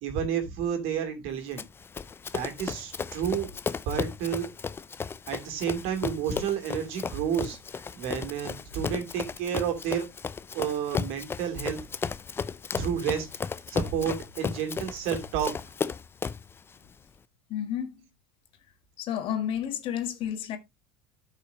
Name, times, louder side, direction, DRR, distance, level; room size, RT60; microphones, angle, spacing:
voice 1, 0.0-1.6 2.3-3.5 3.8-4.5 5.3-10.1 10.5-11.8 12.8-13.3 13.7-15.5, right 8 dB, 60° right, 2.8 m, -30 dB
Run, 1.6-16.5, left 5 dB, 20° left, 0.4 m, -34 dB
voice 2, 17.5-18.1 19.0-20.6, left 10 dB, 50° left, 1.6 m, -31 dB
12.5 x 5.7 x 2.8 m
hypercardioid pair, 90°, 11 cm